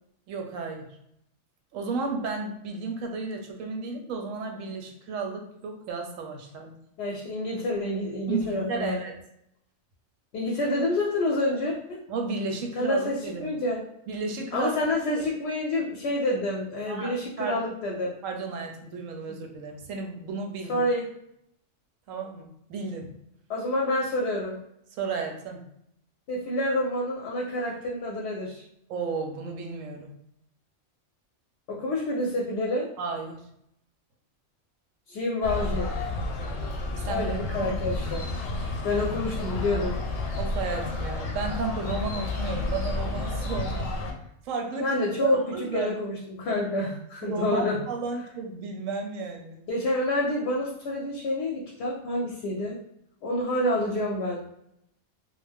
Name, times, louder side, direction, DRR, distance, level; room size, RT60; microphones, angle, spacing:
voice 1, 0.3-0.9 1.7-6.7 8.3-9.2 12.1-13.5 14.1-14.7 15.2-15.3 16.9-17.6 18.2-20.8 22.1-23.1 24.9-25.6 28.9-30.1 33.0-33.4 37.0-37.3 37.6-37.7 40.4-44.0 44.4-44.9 45.2-45.9 47.2-49.6, right 4 dB, 85° right, 3 dB, 1.0 m, -33 dB
voice 2, 7.0-9.0 10.3-12.0 12.7-13.8 14.5-18.1 19.3-19.4 20.7-21.1 23.5-24.6 26.3-28.6 31.7-32.9 35.1-35.9 37.1-38.3 38.8-40.0 44.8-45.4 45.7-47.8 49.7-52.8 53.2-54.4, left 1 dB, 65° left, -2 dB, 0.8 m, -28 dB
sound 1, 35.4-44.1, left 2 dB, 85° left, 1.0 m, -31 dB
2.5 x 2.1 x 3.3 m, 0.76 s
omnidirectional pair, 1.3 m